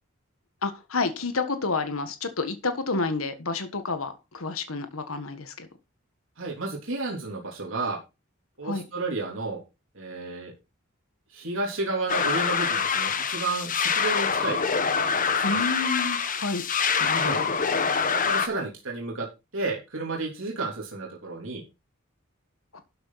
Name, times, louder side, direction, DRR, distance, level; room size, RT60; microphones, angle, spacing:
voice 1, 0.6-5.7 8.6-8.8 15.4-16.6 17.0-17.5 22.7-22.8, left 3 dB, 85° left, 9 dB, 1.5 m, -30 dB
voice 2, 6.4-8.0 8.6-9.6 9.9-10.5 11.3-14.6 15.0-15.6 17.1-17.4 18.1-19.3 19.5-21.6, right 3 dB, 65° right, -1 dB, 3.5 m, -32 dB
sound 1, 12.1-18.5, left 6 dB, 40° left, 1.3 m, -25 dB
12.5 x 6.8 x 4.1 m, 0.27 s
head